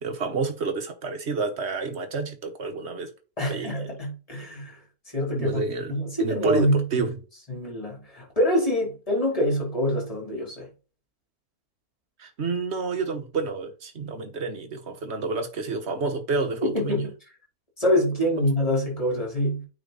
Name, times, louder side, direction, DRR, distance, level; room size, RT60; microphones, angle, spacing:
voice 1, 0.0-3.1 3.5-3.8 5.3-5.9 6.2-7.2 12.2-17.0, right 4 dB, 45° right, 1.5 m, -29 dB
voice 2, 3.4-4.8 5.1-7.1 7.5-10.7 16.6-17.1 17.8-19.7, equal, 20° left, 3.8 m, -25 dB
8.9 x 3.9 x 4.0 m
omnidirectional pair, 1.6 m